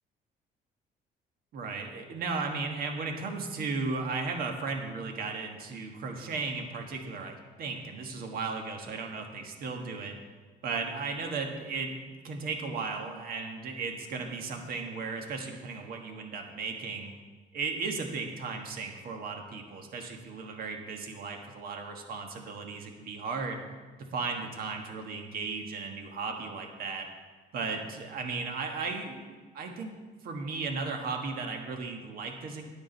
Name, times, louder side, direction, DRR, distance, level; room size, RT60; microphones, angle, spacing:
voice 1, 1.5-10.2 10.6-17.1 17.5-23.6 24.0-27.1 27.5-29.9 30.2-32.7, right 4 dB, 60° right, 3 dB, 1.5 m, -35 dB
9.7 x 9.5 x 4.0 m, 1.4 s
cardioid pair, 110°, 17 cm